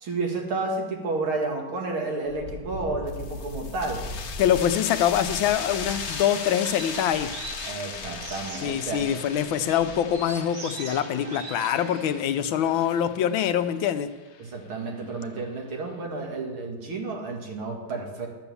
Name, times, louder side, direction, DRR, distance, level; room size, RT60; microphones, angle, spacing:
voice 1, 0.0-4.1 7.7-9.0 14.4-18.3, right 3 dB, 85° right, 1 dB, 2.7 m, -31 dB
Wind, 2.2-10.4, left 2 dB, 20° right, 1.1 m, -41 dB
sound 1, 3.1-14.4, left 6 dB, 60° left, 0.7 m, -38 dB
voice 2, 4.4-7.3 8.6-14.1, left 10 dB, 80° left, 10 dB, 1.4 m, -24 dB
sound 2, 5.5-13.1, right 4 dB, 50° right, 1.5 m, -42 dB
12.5 x 7.0 x 7.0 m, 1.2 s
omnidirectional pair, 2.3 m